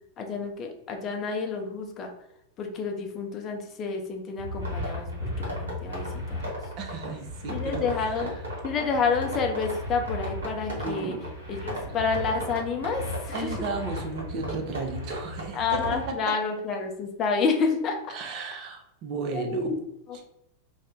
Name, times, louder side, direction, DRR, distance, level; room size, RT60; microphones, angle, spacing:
voice 1, 0.2-2.1 2.6-6.4 7.5-8.3 8.6-11.2 11.5-13.5 15.5-18.1 19.3-19.8 20.1-20.2, left 4 dB, 30° left, 3 dB, 0.5 m, -29 dB
sound 1, 4.4-16.1, left 1 dB, 70° right, 1.2 m, -35 dB
voice 2, 6.8-8.3 10.8-11.2 13.3-16.2 18.1-19.7 20.1-20.2, right 3 dB, 40° right, 4 dB, 0.5 m, -35 dB
2.4 x 2.1 x 3.6 m, 0.83 s
figure-of-eight pair, 90°, 0 cm